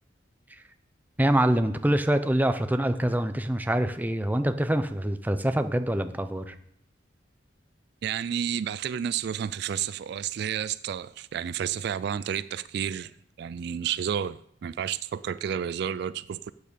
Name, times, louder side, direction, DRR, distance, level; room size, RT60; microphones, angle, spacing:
voice 1, 1.2-6.5, right 1 dB, 10° right, 0.6 m, -25 dB
voice 2, 8.0-16.5, right 8 dB, 60° right, 0.3 m, -31 dB
8.7 x 8.5 x 6.9 m
head